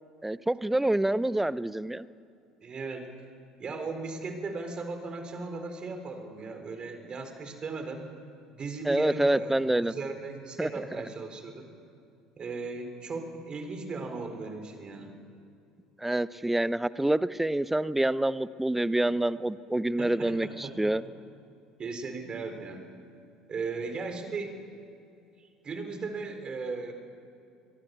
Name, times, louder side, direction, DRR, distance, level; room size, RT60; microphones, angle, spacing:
voice 1, 0.2-2.1 8.9-9.9 10.6-10.8 16.0-21.0, right 1 dB, 5° right, 18 dB, 0.7 m, -27 dB
voice 2, 2.6-3.1 3.6-8.0 8.5-11.7 12.4-15.2 20.0-20.9 21.8-22.8 23.5-24.6 25.4-26.9, right 4 dB, 35° right, 6 dB, 4.4 m, -37 dB
24.5 x 23.0 x 6.9 m, 2.6 s
figure-of-eight pair, 65°, 3 cm